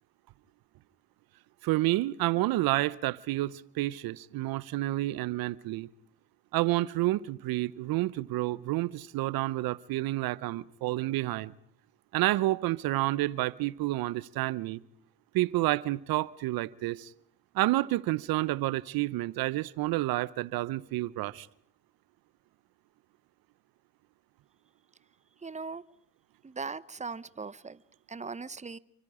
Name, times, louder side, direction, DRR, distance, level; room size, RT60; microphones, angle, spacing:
voice 1, 1.6-5.9 6.5-11.5 12.1-14.8 15.3-17.1 17.5-21.5, right 17 dB, 75° right, 0.8 m, -29 dB
voice 2, 25.4-25.8 26.4-27.8 28.1-28.8, right 4 dB, 20° right, 0.9 m, -39 dB
29.0 x 24.5 x 5.0 m
supercardioid pair, 60°, 36 cm